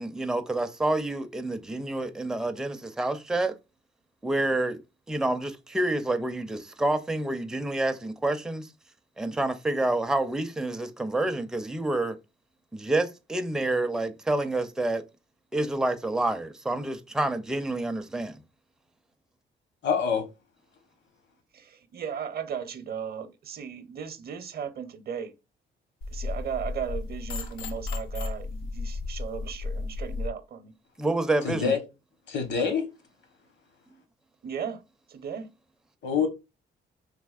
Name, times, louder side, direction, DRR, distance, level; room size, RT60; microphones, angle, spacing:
voice 1, 0.0-3.5 4.2-4.8 5.1-8.7 9.2-12.2 12.7-15.0 15.5-18.4 31.0-31.7, right 2 dB, 5° right, 0.4 m, -28 dB
voice 2, 19.8-20.3 31.4-31.8 32.3-32.9 36.0-36.3, left 6 dB, 65° left, 1.0 m, -25 dB
voice 3, 21.5-25.3 26.1-30.7 34.4-34.8 35.1-35.5, right 7 dB, 50° right, 0.6 m, -36 dB
sound 1, 26.0-30.3, left 3 dB, 90° left, 0.7 m, -34 dB
3.4 x 3.0 x 2.3 m
cardioid pair, 90°, 20 cm